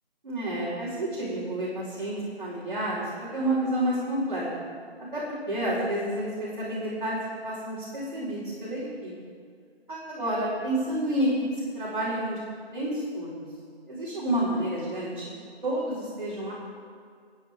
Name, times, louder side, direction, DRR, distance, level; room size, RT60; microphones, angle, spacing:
voice 1, 0.2-4.7 5.1-7.2 7.4-9.1 9.9-11.3 11.7-12.4 12.7-13.4 13.9-15.3 15.6-16.5, right 1 dB, 45° right, -10 dB, 4.8 m, -30 dB
27.0 x 10.0 x 3.7 m, 2.2 s
figure-of-eight pair, 160°, 32 cm